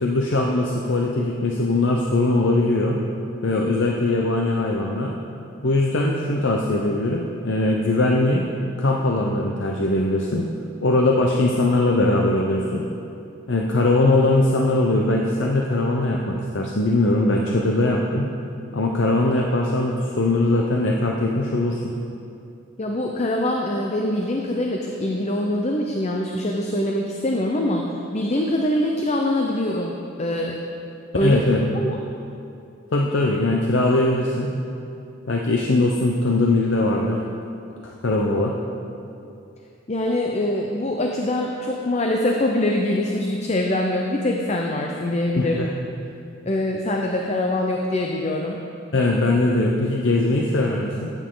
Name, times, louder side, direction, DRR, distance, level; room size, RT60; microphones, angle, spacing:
voice 1, 0.0-3.0 3.4-5.1 5.6-8.4 8.8-10.5 10.8-12.9 13.5-18.3 18.7-21.9 31.2-31.6 32.9-34.5 35.3-37.3 37.8-38.5 45.4-45.7 48.9-51.1, left 2 dB, 65° left, -1 dB, 0.8 m, -21 dB
voice 2, 22.8-27.8 28.1-30.6 31.1-31.4 31.7-32.0 39.9-45.6 46.5-48.6, left 1 dB, 35° left, 1 dB, 0.7 m, -23 dB
14.5 x 9.1 x 3.9 m, 2.7 s
head